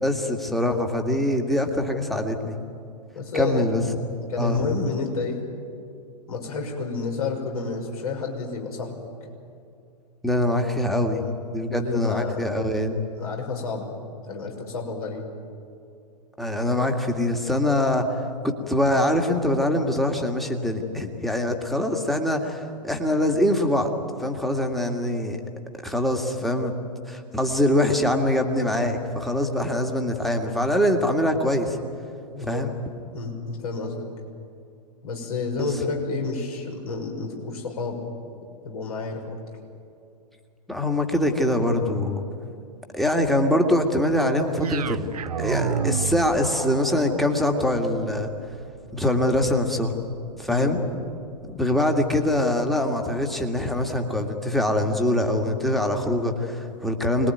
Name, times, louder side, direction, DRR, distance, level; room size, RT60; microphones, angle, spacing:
voice 1, 0.0-2.6 3.3-3.8 4.4-4.7 10.2-11.3 11.5-13.0 16.4-23.9 24.2-25.4 25.7-26.8 27.1-31.8 32.4-32.7 35.6-35.7 40.7-42.2 42.9-48.3 48.9-50.0 50.4-50.8 51.5-57.3, left 1 dB, ahead, 3 dB, 2.1 m, -23 dB
voice 2, 3.1-3.7 4.3-5.4 6.3-9.0 11.7-12.4 13.2-13.9 14.3-15.2 32.3-32.6 33.1-34.1 35.0-38.0 38.6-39.2 50.5-50.7, left 4 dB, 60° left, 1 dB, 6.1 m, -30 dB
sound 1, 44.6-52.8, right 8 dB, 65° right, 0.8 m, -34 dB
25.5 x 20.5 x 9.3 m, 2.5 s
figure-of-eight pair, 110°, 21 cm